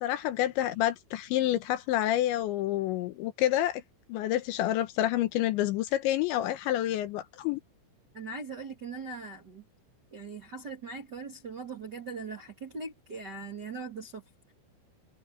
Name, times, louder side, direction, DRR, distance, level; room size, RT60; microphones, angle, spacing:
voice 1, 0.0-3.8 4.1-7.6, left 13 dB, 75° left, 3.1 m, -28 dB
voice 2, 8.1-9.6 10.1-14.2, right 4 dB, 45° right, 1.4 m, -40 dB
omnidirectional pair, 5.7 m